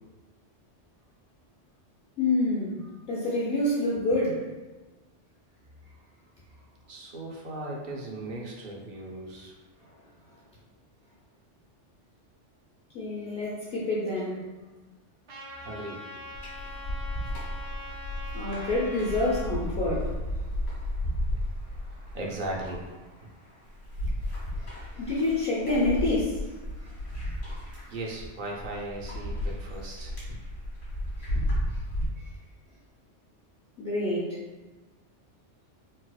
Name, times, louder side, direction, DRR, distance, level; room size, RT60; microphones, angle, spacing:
voice 1, 2.2-4.5 9.8-9.9 12.9-14.4 18.3-20.1 24.6-26.9 27.2-27.7 31.2-31.3 33.8-34.4, left 2 dB, 60° left, -7 dB, 0.8 m, -28 dB
voice 2, 6.9-9.5 15.6-16.0 22.1-22.9 23.2-23.3 27.9-30.4, right 2 dB, 55° right, -2 dB, 0.6 m, -37 dB
Trumpet, 15.3-19.5, left 1 dB, 70° right, 0.9 m, -43 dB
sound 1, 16.3-32.1, equal, 85° left, 1.7 m, -33 dB
4.0 x 2.3 x 2.2 m, 1.2 s
omnidirectional pair, 1.2 m